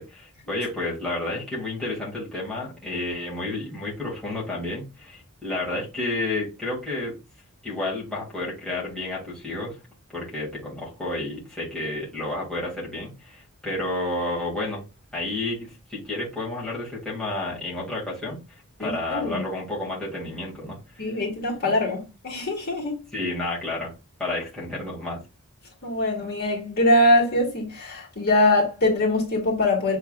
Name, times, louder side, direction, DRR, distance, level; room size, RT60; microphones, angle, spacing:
voice 1, 0.0-7.1 7.6-9.8 10.1-14.8 15.1-21.0 23.1-23.9 24.2-25.2, left 2 dB, 5° left, 1.8 m, -31 dB
voice 2, 18.8-19.4 21.0-22.0 22.2-23.0 25.8-30.0, left 1 dB, 50° left, 2.0 m, -22 dB
6.9 x 3.3 x 2.2 m
head